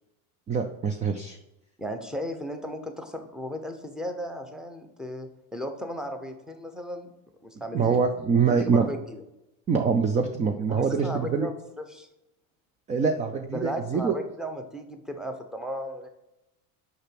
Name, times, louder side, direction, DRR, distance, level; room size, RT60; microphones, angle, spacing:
voice 1, 0.5-1.4 7.7-8.9 9.7-11.5 12.9-14.2, right 5 dB, 20° right, 6 dB, 0.3 m, -24 dB
voice 2, 1.8-7.1 7.4-8.0 8.4-9.2 10.7-12.1 13.3-16.1, equal, ahead, 6 dB, 0.8 m, -35 dB
6.5 x 5.8 x 6.0 m, 0.92 s
supercardioid pair, 140°, 44 cm